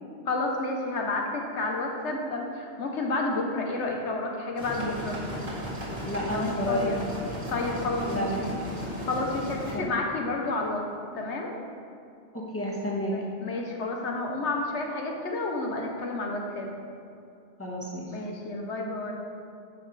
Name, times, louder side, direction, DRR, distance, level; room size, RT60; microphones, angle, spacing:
voice 1, 0.3-5.2 6.3-7.0 7.5-8.6 9.1-10.9 11.1-11.5 13.1-16.7 18.1-19.1, left 2 dB, 90° left, 1 dB, 1.3 m, -30 dB
sound 1, 4.6-9.7, equal, 50° right, 2.1 m, -35 dB
voice 2, 6.0-6.9 8.1-8.4 9.7-9.9 12.3-13.1 17.6-18.1, equal, 10° left, -4 dB, 1.4 m, -30 dB
9.9 x 6.2 x 4.0 m, 2.5 s
omnidirectional pair, 1.1 m